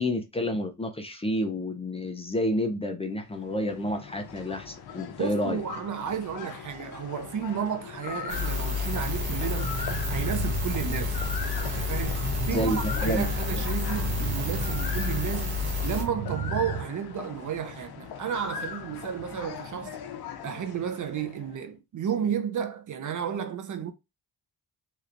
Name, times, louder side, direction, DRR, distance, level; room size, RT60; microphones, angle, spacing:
voice 1, 0.0-5.6 12.5-13.3 13.6-13.7, left 1 dB, 15° left, 0.4 m, -29 dB
sound 1, 3.2-21.6, left 7 dB, 85° left, 0.6 m, -40 dB
voice 2, 5.2-11.2 11.6-20.0 20.4-23.9, right 8 dB, 55° right, 0.5 m, -32 dB
sound 2, 8.3-16.0, left 4 dB, 75° right, 1.0 m, -30 dB
sound 3, 8.9-16.8, right 3 dB, 25° right, 0.8 m, -35 dB
3.2 x 2.8 x 2.5 m
wide cardioid pair, 130°, 37 cm